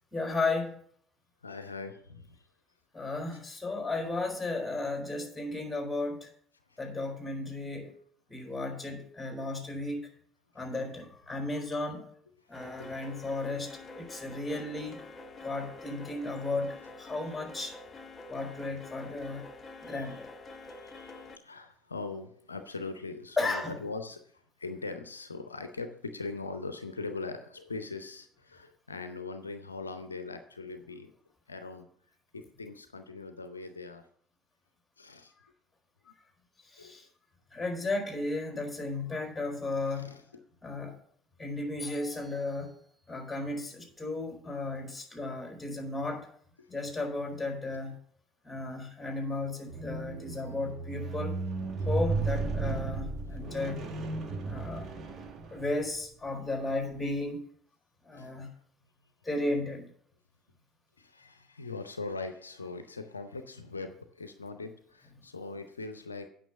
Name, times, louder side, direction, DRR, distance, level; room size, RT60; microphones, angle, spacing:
voice 1, 0.1-0.8 2.9-6.3 6.8-7.9 8.3-10.1 10.5-12.1 12.5-15.0 15.4-17.7 18.3-19.5 19.8-20.3 23.4-23.7 36.6-37.1 37.5-40.1 40.6-41.0 41.4-42.7 43.1-46.3 46.7-48.0 48.4-51.3 51.9-53.8 54.4-54.9 55.1-57.4 58.0-58.5 59.2-59.9, left 2 dB, 10° left, 1 dB, 4.2 m, -34 dB
voice 2, 1.4-2.5 6.7-6.8 12.4-13.0 19.7-20.2 20.5-31.1 31.5-31.9 32.3-34.0 35.0-35.3 36.0-36.1 36.8-37.0 39.9-40.4 46.6-46.7 53.3-53.5 58.1-58.3 61.0-66.3, left 3 dB, 85° left, 8 dB, 0.6 m, -41 dB
sound 1, 12.5-21.4, left 2 dB, 25° left, 0.9 m, -47 dB
Squeak, 49.7-56.1 56.8-56.9, right 3 dB, 40° right, 1.7 m, -34 dB
9.1 x 5.9 x 6.9 m, 0.63 s
figure-of-eight pair, 60°, 0 cm